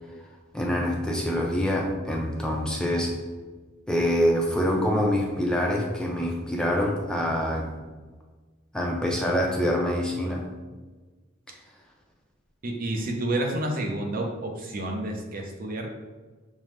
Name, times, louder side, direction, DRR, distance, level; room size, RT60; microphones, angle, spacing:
voice 1, 0.5-3.2 3.9-7.7 8.7-10.5, equal, 5° left, -1 dB, 0.4 m, -25 dB
voice 2, 12.6-15.9, right 1 dB, 45° right, 1 dB, 0.6 m, -29 dB
5.6 x 2.0 x 3.1 m, 1.3 s
head